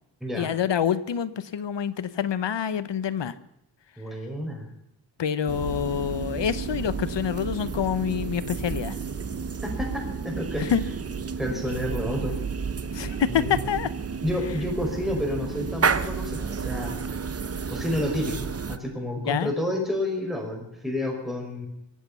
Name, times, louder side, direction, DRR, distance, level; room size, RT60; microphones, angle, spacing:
voice 1, 0.4-3.3 5.2-9.0 10.6-10.8 12.9-13.9 19.2-19.5, left 8 dB, 75° left, 14 dB, 1.0 m, -27 dB
voice 2, 4.0-4.7 9.6-10.6 11.4-12.4 13.3-13.7 14.2-17.0 17.7-21.7, left 1 dB, ahead, 1 dB, 5.4 m, -30 dB
sound 1, 5.5-18.8, right 5 dB, 35° right, 0.8 m, -31 dB
24.0 x 8.5 x 6.9 m, 0.85 s
wide cardioid pair, 100°, 43 cm